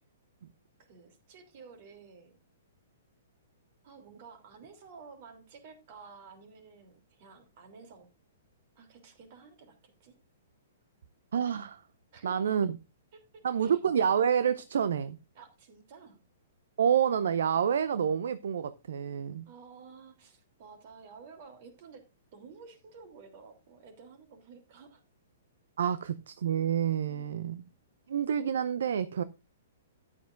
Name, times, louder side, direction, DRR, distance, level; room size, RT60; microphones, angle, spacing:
voice 1, 0.9-2.4 3.8-8.1 8.7-10.2 12.1-12.6 13.1-13.8 15.3-16.2 19.5-22.0 22.3-25.0 25.8-26.0, right 5 dB, 45° right, 3.1 m, -52 dB
voice 2, 11.3-11.8 12.2-12.8 13.4-15.2 16.8-19.5 25.8-27.6 28.1-29.2, right 8 dB, 65° right, 0.6 m, -28 dB
13.5 x 9.8 x 2.5 m
figure-of-eight pair, 115°, 0 cm